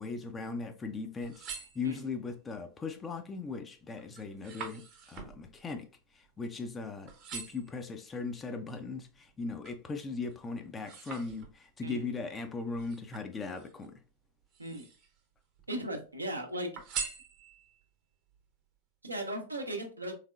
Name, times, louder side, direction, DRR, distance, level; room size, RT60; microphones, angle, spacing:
voice 1, 0.0-4.8 5.1-5.9 6.4-14.0, left 4 dB, 20° left, 0.5 m, -38 dB
sound 1, 1.1-2.3 2.9-3.3 3.7-6.8 7.1-7.8 8.4-9.9 10.3-11.8 12.7-13.9 14.4-15.2 15.5-16.3 16.8-17.8 18.3-18.4, right 6 dB, 35° right, 0.7 m, -44 dB
voice 2, 11.8-12.1 14.6-14.9 15.7-16.7 19.0-20.1, right 1 dB, 80° right, 0.7 m, -37 dB
3.5 x 3.2 x 2.3 m
figure-of-eight pair, 90°, 0 cm